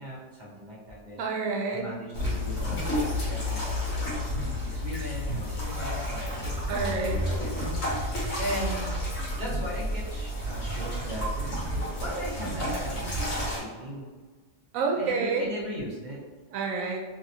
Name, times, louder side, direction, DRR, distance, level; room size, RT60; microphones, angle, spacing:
voice 1, 0.0-1.2 1.7-3.9 4.6-6.4 7.0-7.5 7.9-9.0 9.3-11.3 11.9-14.1 14.9-16.2, right 1 dB, 40° right, -5 dB, 0.8 m, -38 dB
voice 2, 1.2-1.9 6.7-7.2 14.7-15.5 16.5-17.0, right 4 dB, 85° right, 2 dB, 1.0 m, -28 dB
sound 1, 2.1-13.6, left 1 dB, 60° left, 1.2 m, -30 dB
2.9 x 2.8 x 2.6 m, 1.4 s
omnidirectional pair, 1.4 m